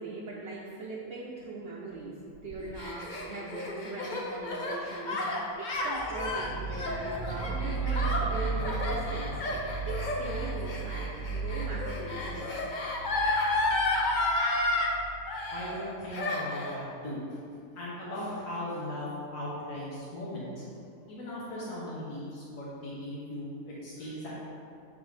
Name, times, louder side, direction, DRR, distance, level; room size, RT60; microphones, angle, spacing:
voice 1, 0.0-2.2 2.4-9.3 9.9-12.7, right 3 dB, 55° right, -5 dB, 0.9 m, -40 dB
Gasp, 2.5-14.9 15.3-15.9 16.1-16.8, left 2 dB, 45° left, 0.6 m, -31 dB
sound 1, 5.9-15.8, right 4 dB, 40° right, 0.4 m, -36 dB
voice 2, 15.5-17.4 17.8-20.7 21.1-24.3, left 1 dB, 85° left, -8 dB, 1.7 m, -38 dB
9.0 x 3.5 x 3.3 m, 2.5 s
omnidirectional pair, 1.6 m